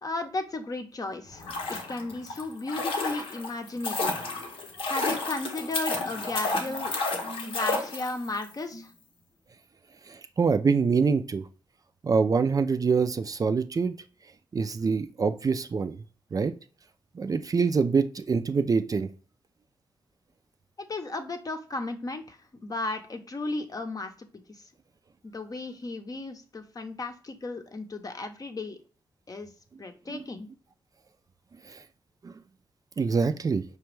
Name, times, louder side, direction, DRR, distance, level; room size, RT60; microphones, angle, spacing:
voice 1, 0.0-4.1 4.9-6.9 7.5-8.9 20.9-24.1 24.5-24.6 25.2-28.8 29.3-29.5 29.8-30.5, left 2 dB, 40° left, 6 dB, 0.7 m, -35 dB
sound 1, 1.3-8.4 8.7-8.8, left 3 dB, 85° left, 0.8 m, -31 dB
voice 2, 10.1-11.4 12.0-13.9 14.5-16.0 16.3-16.5 17.1-19.1 30.1-30.2 31.7-31.8 32.2-32.4 33.0-33.6, right 5 dB, 40° right, 9 dB, 0.4 m, -25 dB
5.0 x 2.2 x 3.1 m, 0.38 s
supercardioid pair, 45°, 9 cm